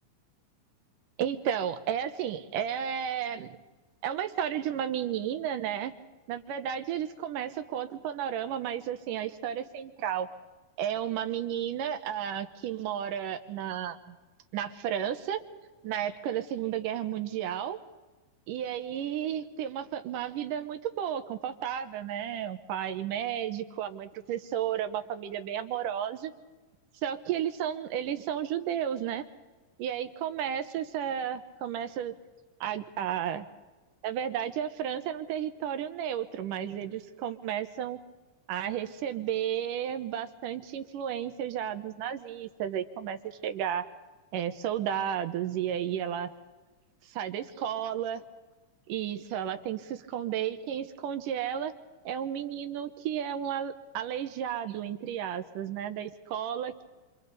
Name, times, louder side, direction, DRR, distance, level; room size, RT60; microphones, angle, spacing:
voice 1, 1.2-3.6 4.0-5.9 6.3-10.3 10.8-14.2 14.5-15.4 15.8-17.8 18.5-26.3 27.0-29.2 29.8-32.1 32.6-33.5 34.0-38.0 38.5-43.8 44.3-46.3 47.2-48.2 48.9-51.7 52.1-56.8, right 9 dB, 80° right, 8 dB, 2.6 m, -33 dB
28.0 x 26.0 x 4.1 m, 1.3 s
omnidirectional pair, 3.9 m